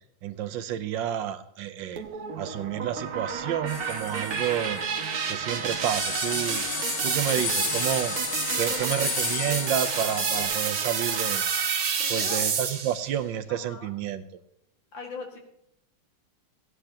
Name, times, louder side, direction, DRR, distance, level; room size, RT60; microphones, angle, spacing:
voice 1, 0.2-2.0 2.3-4.8 5.3-6.6 7.0-8.2 8.6-11.4 12.1-14.2, right 10 dB, 75° right, 11 dB, 1.4 m, -30 dB
sound 1, 2.0-13.1, right 6 dB, 55° right, 1.4 m, -29 dB
sound 2, 3.7-5.1 5.5-5.6 5.8-10.4, left 8 dB, 60° left, 1.2 m, -33 dB
voice 2, 8.5-8.9 12.0-12.4 13.5-13.9 14.9-15.4, left 4 dB, 75° left, 1 dB, 2.7 m, -39 dB
16.5 x 10.0 x 2.9 m, 0.77 s
omnidirectional pair, 2.1 m